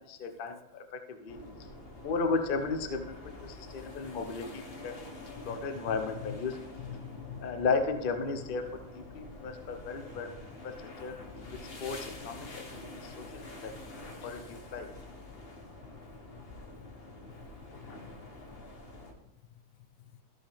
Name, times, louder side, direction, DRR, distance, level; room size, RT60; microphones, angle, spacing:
voice 1, 0.0-1.4 2.0-3.1 3.4-5.0 5.4-6.6 7.4-10.3 10.6-10.7 11.0-11.2 11.5-12.6 12.9-14.9, left 4 dB, 65° left, 6 dB, 0.5 m, -34 dB
sound 1, 1.3-19.1, left 2 dB, 40° left, 1.1 m, -47 dB
voice 2, 6.8-7.5 10.0-10.1 14.2-14.3 16.3-16.4 17.8-18.2 20.0-20.2, left 10 dB, 85° left, 12 dB, 1.4 m, -45 dB
14.0 x 5.5 x 3.5 m, 0.97 s
omnidirectional pair, 2.1 m